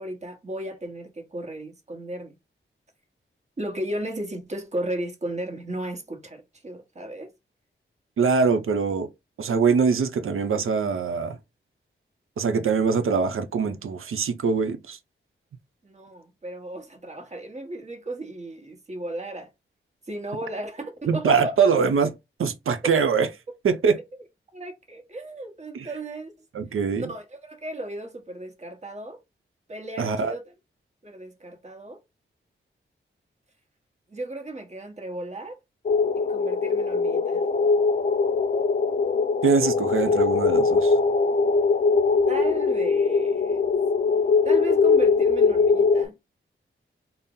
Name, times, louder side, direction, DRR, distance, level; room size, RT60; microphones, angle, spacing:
voice 1, 0.0-2.4 3.6-7.3 15.8-19.5 20.1-21.6 24.5-26.3 26.9-29.2 29.7-30.5 31.0-32.0 34.1-35.6 36.3-37.5 42.3-43.6 44.4-46.2, right 1 dB, 35° right, 1.0 m, -35 dB
voice 2, 8.2-9.1 9.4-11.4 12.4-15.0 21.1-22.1 22.4-23.3 23.6-24.0 25.7-25.9 26.5-27.1 30.0-30.3 39.4-40.9, right 5 dB, 85° right, 0.6 m, -23 dB
sound 1, 35.9-46.1, left 4 dB, 40° left, 0.5 m, -21 dB
4.2 x 2.0 x 3.6 m
wide cardioid pair, 110°, 21 cm